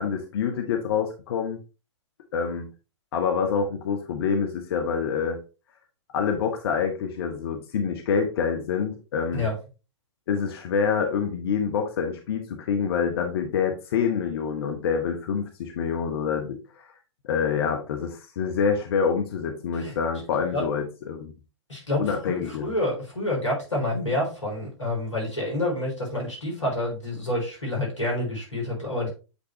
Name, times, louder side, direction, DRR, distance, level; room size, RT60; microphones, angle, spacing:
voice 1, 0.0-1.6 2.3-2.7 3.1-5.4 6.1-9.5 10.3-16.9 17.2-21.3 22.0-22.7, left 6 dB, 55° left, 4 dB, 1.0 m, -26 dB
voice 2, 21.7-29.1, left 1 dB, 85° left, -2 dB, 3.8 m, -28 dB
8.2 x 4.0 x 3.1 m, 0.31 s
figure-of-eight pair, 110°, 15 cm